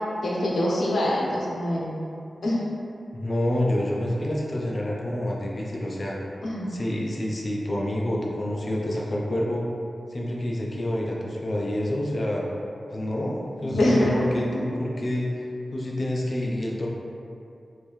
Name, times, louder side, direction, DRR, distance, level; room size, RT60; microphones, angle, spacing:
voice 1, 0.2-2.0 2.4-2.6 6.4-6.7 13.6-14.3 14.5-14.7, left 1 dB, 75° left, -5 dB, 0.7 m, -24 dB
voice 2, 3.1-6.2 6.7-9.6 10.1-12.5 12.9-15.3 15.7-16.9, left 1 dB, 35° left, -3 dB, 0.4 m, -28 dB
3.5 x 2.7 x 3.0 m, 2.5 s
wide cardioid pair, 140°, 0 cm